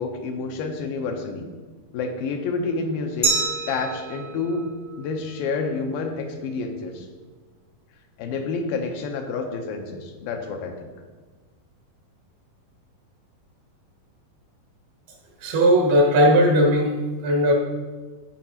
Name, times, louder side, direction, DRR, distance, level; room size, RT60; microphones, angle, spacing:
voice 1, 0.0-1.5 1.9-3.3 3.7-4.7 5.0-7.1 8.2-10.9, left 4 dB, 80° left, 4 dB, 2.5 m, -29 dB
Glass, 3.2-5.9, right 4 dB, 40° left, 0.6 m, -29 dB
voice 2, 15.4-17.5, equal, 80° right, 1 dB, 3.4 m, -18 dB
16.0 x 5.8 x 2.9 m, 1.4 s
omnidirectional pair, 4.3 m